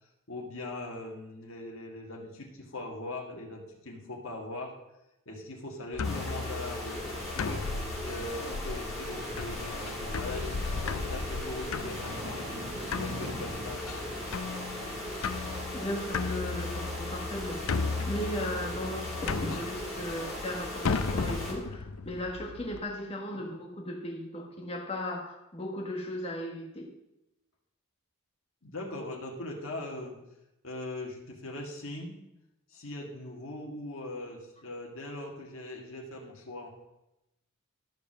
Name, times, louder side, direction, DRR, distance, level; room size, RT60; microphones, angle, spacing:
voice 1, 0.3-4.7 5.3-7.6 8.0-13.8 28.6-30.2 30.6-32.1 32.7-36.7, left 2 dB, 60° left, -1 dB, 1.7 m, -40 dB
sound 1, 5.9-22.8, left 4 dB, 80° left, 0.5 m, -36 dB
sound 2, 6.0-21.5, left 1 dB, ahead, 2.7 m, -38 dB
sound 3, 9.0-15.6, right 1 dB, 50° right, 1.4 m, -46 dB
voice 2, 15.7-17.6 18.1-26.9, left 1 dB, 30° left, 0 dB, 1.6 m, -36 dB
12.0 x 5.2 x 6.1 m, 0.91 s
head